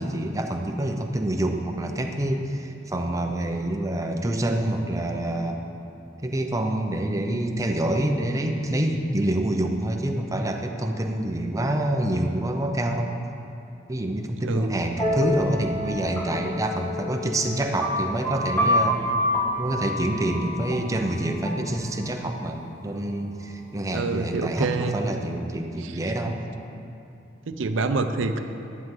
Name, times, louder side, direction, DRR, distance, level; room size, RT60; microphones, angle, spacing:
voice 1, 0.0-5.6 6.2-13.1 13.9-19.0 19.6-26.4, right 1 dB, 15° right, 3 dB, 0.7 m, -27 dB
voice 2, 14.4-14.8 23.9-25.0 25.8-26.3 27.5-28.4, right 3 dB, 75° right, 7 dB, 0.6 m, -27 dB
sound 1, 15.0-22.5, left 1 dB, 10° left, 1.3 m, -28 dB
12.0 x 11.0 x 3.9 m, 2.7 s
head